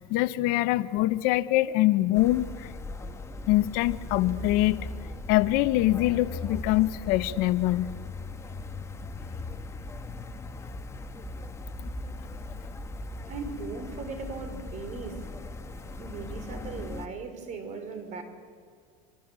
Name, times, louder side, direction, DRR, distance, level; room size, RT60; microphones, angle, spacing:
voice 1, 0.0-2.7 3.5-4.8 5.3-7.9 11.8-11.9, left 16 dB, 60° left, 13 dB, 1.0 m, -24 dB
sound 1, 2.1-17.1, left 2 dB, 15° left, 1.6 m, -39 dB
voice 2, 13.3-15.3 16.0-18.2, right 4 dB, 45° right, 8 dB, 5.0 m, -38 dB
26.5 x 25.0 x 8.3 m, 2.1 s
supercardioid pair, 110°, 17 cm